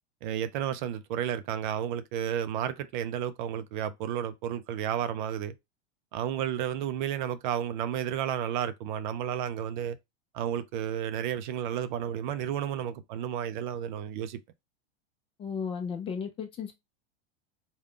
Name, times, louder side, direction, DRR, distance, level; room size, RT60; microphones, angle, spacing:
voice 1, 0.2-5.5 6.1-10.0 10.3-14.4, right 9 dB, 45° right, 0.5 m, -32 dB
voice 2, 15.4-16.7, left 6 dB, 15° left, 0.4 m, -34 dB
3.6 x 2.2 x 3.6 m
supercardioid pair, 145°, 33 cm